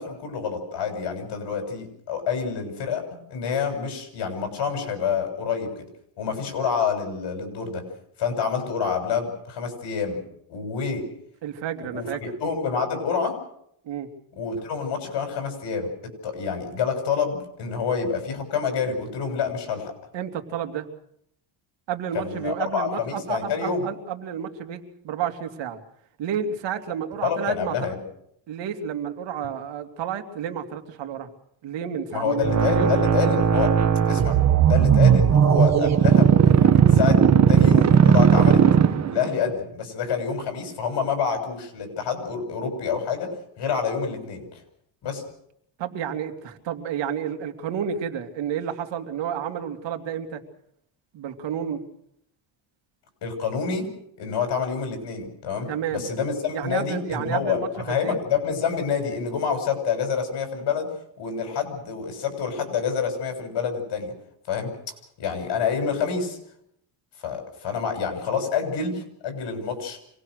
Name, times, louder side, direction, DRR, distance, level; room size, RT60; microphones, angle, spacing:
voice 1, 0.0-5.8 6.2-7.8 8.2-10.2 10.5-11.0 11.9-12.1 12.4-13.4 14.4-15.9 16.2-19.9 22.1-23.8 27.2-28.0 32.1-33.7 34.1-34.4 34.6-38.6 39.1-43.3 43.6-44.6 45.0-45.2 53.2-53.9 54.2-60.9 61.2-64.1 64.5-64.7 65.2-66.4 67.2-70.0, left 6 dB, 65° left, 5 dB, 7.2 m, -27 dB
voice 2, 11.4-12.2 13.8-14.1 20.1-20.9 21.9-25.8 26.2-27.9 28.5-31.3 31.6-33.0 33.2-33.3 45.8-50.4 51.1-51.8 55.7-56.1 56.5-58.2, right 8 dB, 70° right, 6 dB, 2.8 m, -31 dB
sound 1, 32.4-39.4, right 7 dB, 35° right, 1.4 m, -17 dB
26.5 x 20.0 x 6.6 m, 0.74 s
cardioid pair, 115°, 45 cm